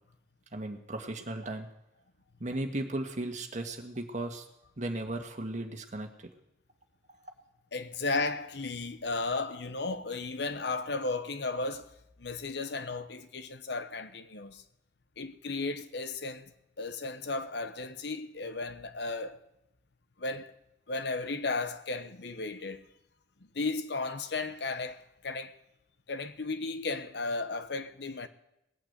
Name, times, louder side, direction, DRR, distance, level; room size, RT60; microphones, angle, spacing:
voice 1, 0.5-1.7 2.4-4.5 4.8-6.1 7.1-7.3, right 1 dB, 40° right, 1.7 m, -36 dB
voice 2, 7.7-11.9 12.2-14.6 15.2-16.5 16.8-19.4 20.2-20.5 20.9-22.8 23.5-25.6 26.1-28.3, left 3 dB, 65° left, 1.0 m, -34 dB
19.0 x 8.8 x 8.1 m
head